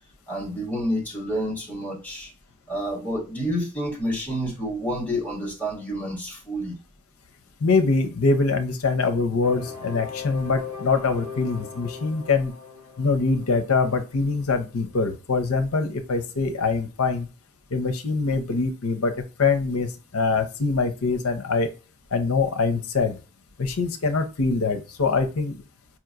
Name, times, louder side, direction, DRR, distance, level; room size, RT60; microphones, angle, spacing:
voice 1, 0.3-2.3 2.7-6.8, equal, 5° left, 1.3 m, -29 dB
voice 2, 7.6-12.5 13.0-17.3 17.7-19.1 19.4-21.7 22.1-23.2 23.6-25.6, left 4 dB, 75° left, 0.7 m, -23 dB
sound 1, 9.4-15.1, left 5 dB, 30° left, 1.1 m, -39 dB
4.8 x 2.9 x 2.4 m
head